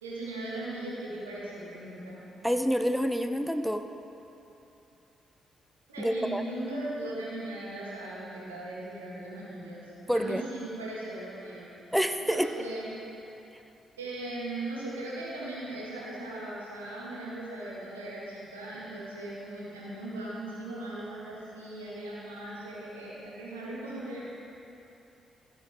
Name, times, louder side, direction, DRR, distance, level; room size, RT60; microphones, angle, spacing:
voice 1, 0.0-2.2 5.9-11.7 12.2-12.9 14.0-24.2, right 1 dB, 85° right, -7 dB, 1.9 m, -38 dB
voice 2, 2.4-3.8 6.0-6.4 10.1-10.4 11.9-12.5, equal, ahead, 8 dB, 0.6 m, -27 dB
15.5 x 6.4 x 3.8 m, 2.9 s
figure-of-eight pair, 40°, 0 cm